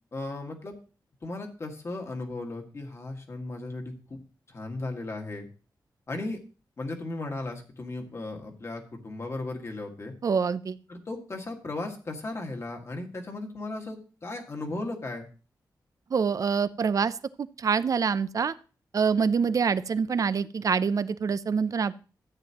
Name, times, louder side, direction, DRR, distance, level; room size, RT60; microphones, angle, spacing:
voice 1, 0.1-0.7 1.2-4.2 4.5-5.5 6.1-6.4 6.8-10.1 10.9-15.3, left 2 dB, 35° left, 3 dB, 1.9 m, -36 dB
voice 2, 10.2-10.8 16.1-18.5 18.9-21.9, right 6 dB, 50° right, 15 dB, 0.5 m, -26 dB
13.0 x 9.1 x 3.0 m, 0.36 s
wide cardioid pair, 155°, 8 cm